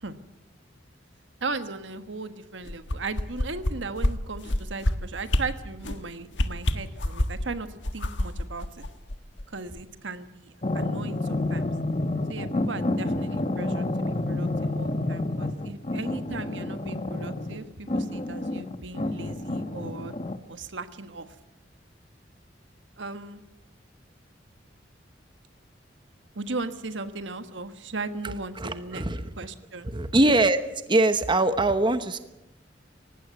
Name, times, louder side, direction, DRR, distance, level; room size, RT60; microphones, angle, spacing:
voice 1, 1.4-7.7 7.9-8.8 9.5-11.7 12.3-20.1 20.5-21.3 23.0-23.4 26.3-29.0 29.4-29.9, right 3 dB, 85° right, 10 dB, 1.4 m, -37 dB
sound 1, 2.6-3.7 4.0-4.1 4.4-4.9 5.3-5.4 5.8-6.0 6.3-7.4 7.8-9.4 9.8-9.9, left 1 dB, 75° left, 1.5 m, -25 dB
sound 2, 10.6-20.4, left 2 dB, 35° left, 1.1 m, -29 dB
voice 2, 28.2-29.3 29.8-30.6 30.9-32.2, right 2 dB, 25° right, 10 dB, 1.0 m, -23 dB
19.0 x 16.0 x 9.4 m, 0.96 s
head